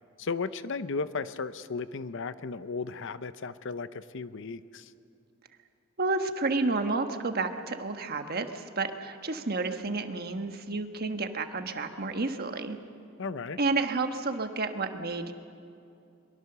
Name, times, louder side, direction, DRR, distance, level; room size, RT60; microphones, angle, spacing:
voice 1, 0.2-4.9 13.2-13.6, left 4 dB, 60° left, 14 dB, 0.7 m, -35 dB
voice 2, 6.0-12.8 13.6-15.3, right 3 dB, 45° right, 7 dB, 1.3 m, -30 dB
23.5 x 22.0 x 6.9 m, 2.6 s
head